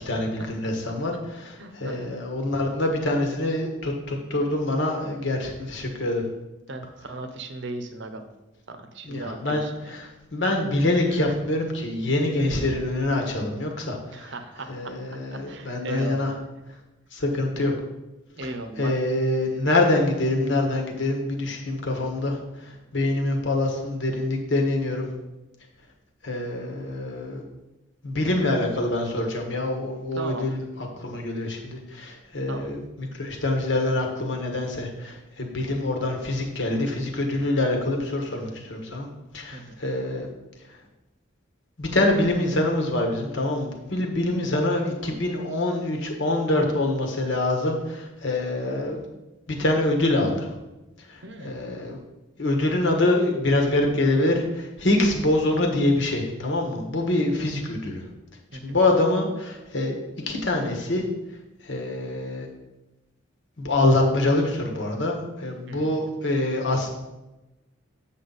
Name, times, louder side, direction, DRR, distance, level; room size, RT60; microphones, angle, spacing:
voice 1, 0.1-1.1 1.7-6.2 9.0-9.6 9.9-14.3 14.7-16.3 17.1-17.7 18.8-22.4 22.6-25.1 26.2-27.4 28.0-30.6 31.0-39.1 39.3-40.3 41.8-49.0 49.5-50.5 51.4-52.0 52.4-58.0 58.6-60.0 60.3-61.0 61.6-62.5 63.6-66.9, left 2 dB, 60° left, 2 dB, 1.4 m, -25 dB
voice 2, 1.6-2.2 6.7-8.2 8.7-9.9 11.1-11.4 12.4-12.8 14.1-14.9 15.3-16.3 18.4-19.0 30.1-30.5 32.5-32.8 39.5-39.8 51.2-51.6 57.2-57.7 58.5-58.8 65.7-66.1, right 2 dB, 60° right, 7 dB, 0.8 m, -37 dB
7.9 x 5.8 x 4.0 m, 1.0 s
head